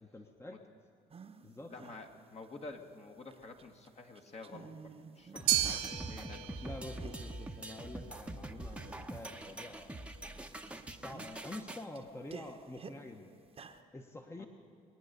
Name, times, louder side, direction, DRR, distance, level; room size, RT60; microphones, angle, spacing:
voice 1, 0.0-0.6 1.4-1.7 6.6-9.9 10.9-13.3 13.9-14.5, left 2 dB, 15° left, 4 dB, 1.1 m, -47 dB
sound 1, 1.1-1.5 1.7-2.8 3.2-3.9 4.1-6.2 6.4-7.4 7.9-8.0 8.6-9.2 9.9-10.3 10.5-13.0 13.4-13.8, right 5 dB, 35° right, 1.1 m, -52 dB
voice 2, 1.7-6.7 14.4-14.5, left 3 dB, 40° left, 4 dB, 1.7 m, -50 dB
sound 2, 5.4-11.8, right 1 dB, 5° right, 1.0 m, -44 dB
sound 3, 5.5-13.8, right 13 dB, 80° right, 1.3 m, -39 dB
22.5 x 9.0 x 6.7 m, 2.6 s
supercardioid pair, 65°, 17 cm